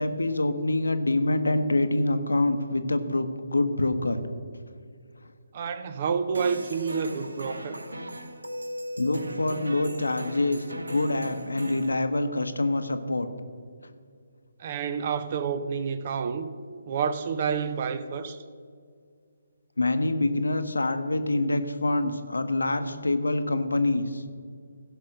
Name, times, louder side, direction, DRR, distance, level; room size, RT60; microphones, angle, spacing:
voice 1, 0.0-4.2 9.0-13.3 19.8-24.2, left 2 dB, 70° left, 1.0 m, -26 dB
voice 2, 5.5-7.8 14.6-16.5 16.9-18.4, right 6 dB, 35° right, 0.6 m, -29 dB
sound 1, 6.3-11.9, equal, 70° right, 1.2 m, -38 dB
16.0 x 5.5 x 6.3 m
figure-of-eight pair, 140°, 0 cm